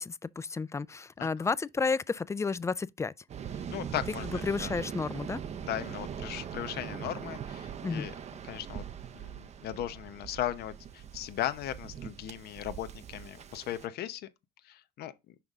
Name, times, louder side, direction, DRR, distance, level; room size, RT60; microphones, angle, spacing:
voice 1, 0.0-3.1 4.4-5.4 7.8-8.1, left 4 dB, 15° left, 0.3 m, -32 dB
Waves surf, 3.3-13.9, right 8 dB, 40° right, 0.6 m, -41 dB
voice 2, 3.7-4.7 5.6-8.1 8.5-8.9 9.1-14.3 14.6-15.1, left 12 dB, 70° left, 0.8 m, -37 dB
6.0 x 5.2 x 3.5 m
cardioid pair, 110°, 17 cm